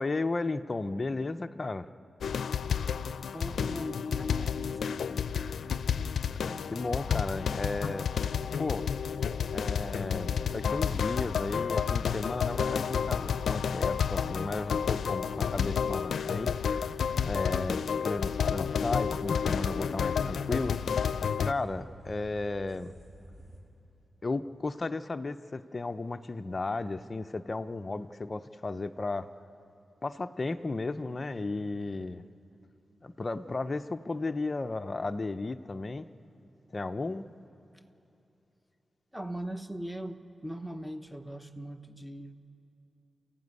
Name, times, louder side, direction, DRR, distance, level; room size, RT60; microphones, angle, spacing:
voice 1, 0.0-1.9 6.4-8.1 8.6-8.9 9.5-16.6 17.2-20.8 21.4-22.9 24.2-29.3 30.0-32.2 33.0-36.1 36.7-37.3, left 3 dB, 30° left, 8 dB, 0.5 m, -34 dB
sound 1, 2.2-21.5, left 7 dB, 90° left, 0.5 m, -30 dB
voice 2, 3.3-4.8 39.1-42.5, right 1 dB, ahead, 8 dB, 0.9 m, -40 dB
sound 2, 4.7-23.6, right 1 dB, 40° right, 3.8 m, -53 dB
sound 3, 8.5-22.2, right 1 dB, 80° right, 2.3 m, -52 dB
28.0 x 15.0 x 9.5 m, 2.9 s
wide cardioid pair, 150°, 0 cm